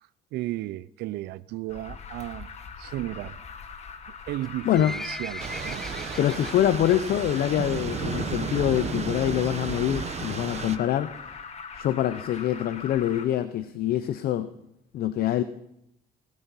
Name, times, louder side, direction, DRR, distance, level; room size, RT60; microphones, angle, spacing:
voice 1, 0.0-2.5 2.8-3.4 4.3-5.8, right 16 dB, 75° right, 0.4 m, -34 dB
Alarm, 1.7-13.2, left 6 dB, 40° left, 1.4 m, -41 dB
Livestock farm animals working animals, 4.3-7.0 7.3-7.6 7.9-8.0 8.7-8.8 9.1-9.2 9.4-9.5 10.0-10.3 10.8-10.9 11.2-11.3 11.4-11.5 11.7-11.8 12.3-12.4 12.9-13.0 13.4-13.5, left 1 dB, 5° left, 0.4 m, -39 dB
Thunder / Rain, 5.4-10.8, right 7 dB, 40° right, 1.0 m, -33 dB
voice 2, 6.2-11.3 11.7-14.5 14.9-15.4, left 11 dB, 65° left, 0.7 m, -25 dB
19.5 x 12.5 x 4.1 m
cardioid pair, 110°, 17 cm